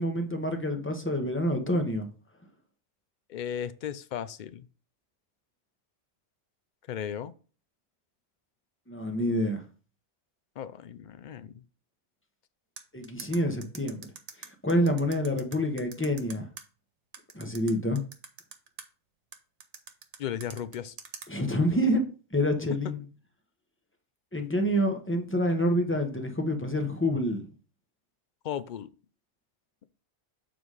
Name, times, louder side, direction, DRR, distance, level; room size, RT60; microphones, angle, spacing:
voice 1, 0.0-2.1 8.9-9.6 12.9-14.1 14.6-16.5 17.3-18.0 21.3-23.0 24.3-27.5, equal, 10° left, 1.0 m, -27 dB
voice 2, 3.3-4.7 6.9-7.3 10.6-11.6 20.2-20.9 28.4-28.9, left 9 dB, 55° left, 0.6 m, -36 dB
sound 1, 12.8-16.6 17.1-18.9 19.3-21.3, right 6 dB, 85° right, 1.2 m, -44 dB
6.9 x 4.0 x 4.8 m
omnidirectional pair, 1.2 m